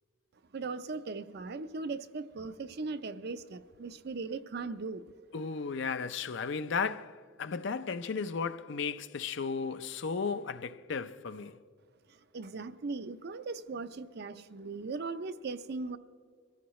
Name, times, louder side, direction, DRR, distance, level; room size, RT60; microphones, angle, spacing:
voice 1, 0.5-5.1 12.1-16.0, right 3 dB, 55° right, 0.5 m, -39 dB
voice 2, 5.3-11.6, left 5 dB, 65° left, 0.5 m, -35 dB
23.5 x 15.5 x 3.1 m
head